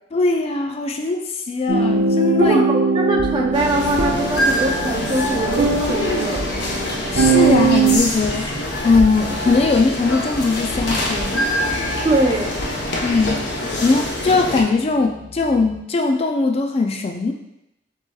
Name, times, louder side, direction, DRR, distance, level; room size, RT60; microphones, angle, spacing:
voice 1, 0.1-2.6 7.1-8.5 8.8-11.5 13.0-17.3, left 3 dB, 35° left, 3 dB, 0.3 m, -20 dB
sound 1, 1.7-8.0, right 4 dB, 70° right, 0.7 m, -20 dB
voice 2, 2.4-6.5 12.0-12.5, right 1 dB, 30° right, 1 dB, 0.6 m, -22 dB
sound 2, 3.1-15.8, left 3 dB, 45° right, 1.6 m, -42 dB
sound 3, 3.5-14.6, left 1 dB, 65° left, 0.8 m, -24 dB
7.6 x 3.0 x 2.3 m, 0.87 s
head